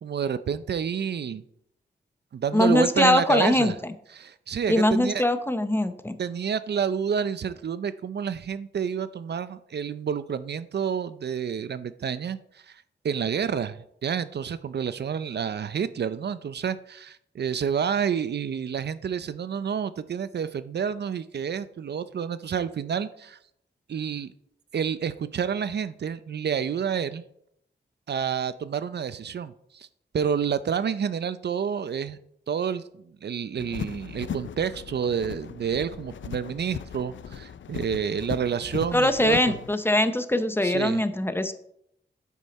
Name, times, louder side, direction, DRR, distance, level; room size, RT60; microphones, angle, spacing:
voice 1, 0.0-1.4 2.3-3.7 4.1-5.2 6.2-12.4 12.7-23.4 23.9-24.3 24.7-27.2 28.1-29.9 30.1-32.2 32.5-32.8 33.2-39.4 40.6-41.0, right 7 dB, 60° right, 14 dB, 0.5 m, -29 dB
voice 2, 2.5-3.7 4.7-6.1 38.9-41.5, left 1 dB, 10° left, 10 dB, 0.7 m, -22 dB
sound 1, 33.6-39.7, left 8 dB, 90° left, 0.5 m, -38 dB
9.9 x 8.3 x 4.1 m, 0.73 s
wide cardioid pair, 145°, 19 cm